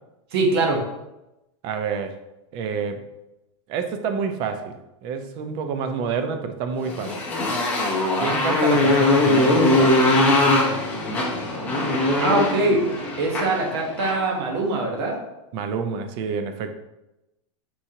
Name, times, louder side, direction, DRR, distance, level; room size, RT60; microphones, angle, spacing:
voice 1, 0.3-0.8 12.2-12.8 13.2-15.1, right 2 dB, 55° right, 0 dB, 1.1 m, -22 dB
voice 2, 1.6-2.1 2.5-3.0 3.7-4.8 5.0-7.2 8.2-10.0 15.5-16.7, right 6 dB, 30° right, 7 dB, 0.4 m, -28 dB
Motorcycle, 6.8-14.2, left 2 dB, 10° left, 0.6 m, -21 dB
4.5 x 3.6 x 2.8 m, 0.94 s
supercardioid pair, 165°, 16 cm